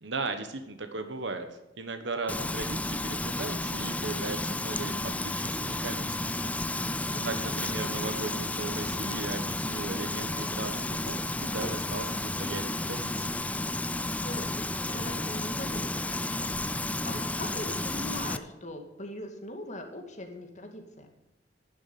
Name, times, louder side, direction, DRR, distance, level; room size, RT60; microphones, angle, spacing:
voice 1, 0.0-13.4, right 3 dB, 75° right, 7 dB, 1.2 m, -37 dB
Frying (food), 2.3-18.4, left 2 dB, 10° left, 0.5 m, -32 dB
voice 2, 7.1-7.7 14.2-16.0 16.3-16.5 16.8-21.1, left 1 dB, 40° left, 3 dB, 2.3 m, -41 dB
11.5 x 7.2 x 9.4 m, 0.97 s
head